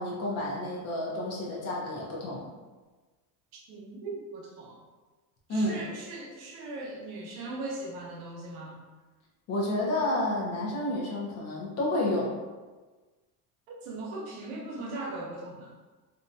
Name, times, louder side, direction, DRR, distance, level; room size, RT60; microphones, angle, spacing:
voice 1, 0.0-2.4 5.5-5.8 9.5-12.3, left 1 dB, 40° left, -3 dB, 0.6 m, -30 dB
voice 2, 3.5-4.8 5.5-8.8 13.7-15.7, right 2 dB, 80° right, -2 dB, 0.8 m, -39 dB
2.6 x 2.2 x 2.6 m, 1.3 s
cardioid pair, 155°, 41 cm